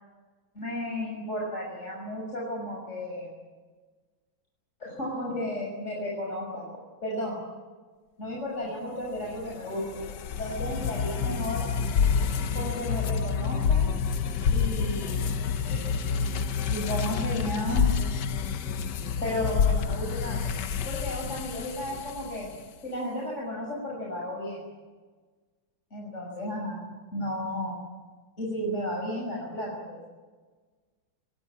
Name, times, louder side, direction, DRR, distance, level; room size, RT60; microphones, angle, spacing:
voice 1, 0.5-3.3 4.8-6.7 7.0-7.4 8.2-10.0 10.4-11.7 12.5-13.9 14.5-15.1 15.7-15.9 16.7-17.9 19.2-20.5 20.8-22.5 22.8-24.6 25.9-26.8 27.1-27.8 28.4-30.1, left 1 dB, 35° left, -3 dB, 6.6 m, -33 dB
sound 1, 9.2-22.6, left 6 dB, 60° left, 1.5 m, -28 dB
28.0 x 20.5 x 8.6 m, 1.4 s
omnidirectional pair, 2.2 m